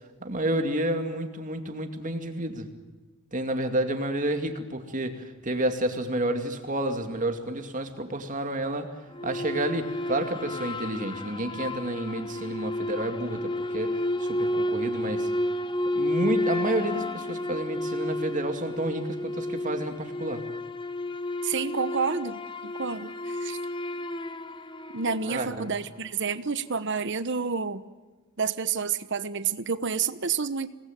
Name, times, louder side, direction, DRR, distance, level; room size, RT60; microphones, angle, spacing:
voice 1, 0.2-2.7 3.3-8.9 9.2-13.9 14.2-15.3 16.0-20.4 25.3-25.7, right 1 dB, 35° right, 6 dB, 2.4 m, -30 dB
sound 1, 9.1-25.7, left 1 dB, 20° left, 0.9 m, -31 dB
voice 2, 21.4-23.6 24.9-27.8 28.4-30.7, right 5 dB, 55° right, 13 dB, 1.1 m, -29 dB
27.0 x 20.0 x 9.2 m, 1.3 s
head